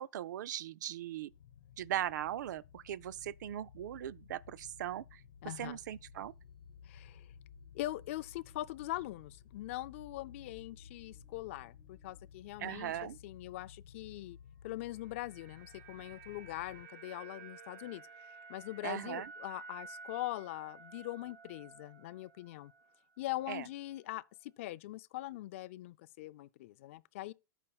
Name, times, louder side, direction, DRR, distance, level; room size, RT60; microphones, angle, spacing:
voice 1, 0.0-1.3 1.8-6.3 12.6-13.2 18.8-19.3 23.5-23.7, right 12 dB, 65° right, 0.4 m, -39 dB
sound 1, 1.3-16.8, left 8 dB, 85° left, 1.0 m, -56 dB
sound 2, 4.6-12.3, equal, 10° left, 1.4 m, -66 dB
voice 2, 5.4-5.8 6.8-7.3 7.7-14.4 14.6-18.0 18.5-22.7 23.2-27.3, left 16 dB, 40° left, 0.3 m, -42 dB
sound 3, 14.7-23.0 23.2-23.4, right 4 dB, 50° right, 2.4 m, -53 dB
14.0 x 5.3 x 2.3 m
supercardioid pair, 165°, 11 cm